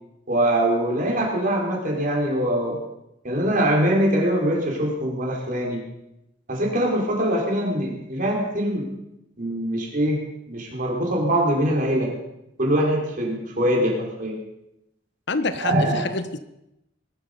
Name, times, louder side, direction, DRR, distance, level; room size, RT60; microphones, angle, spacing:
voice 1, 0.3-2.8 3.2-5.8 6.5-8.9 9.4-12.1 12.6-14.4 15.6-16.0, right 1 dB, 45° right, -1 dB, 5.0 m, -23 dB
voice 2, 15.3-16.4, left 3 dB, 65° left, 11 dB, 1.0 m, -27 dB
20.5 x 12.5 x 5.4 m, 0.87 s
head